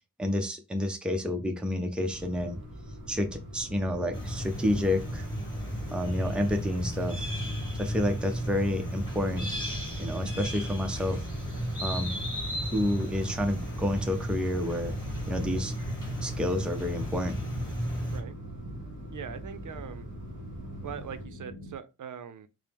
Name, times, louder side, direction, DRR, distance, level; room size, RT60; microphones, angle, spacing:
voice 1, 0.2-2.6 3.1-5.3 5.9-7.3 7.7-9.5 10.0-11.3 11.8-12.2 12.7-15.0 15.3-15.8 16.2-17.4, left 1 dB, 5° right, 0.5 m, -29 dB
sound 1, 2.1-21.3, equal, 35° right, 1.4 m, -44 dB
sound 2, 4.1-18.2, equal, 15° left, 1.5 m, -34 dB
sound 3, 16.3-21.8, right 1 dB, 60° left, 0.7 m, -46 dB
voice 2, 19.1-20.1 20.8-22.5, right 8 dB, 65° right, 0.5 m, -41 dB
4.3 x 2.0 x 3.4 m
wide cardioid pair, 140°, 33 cm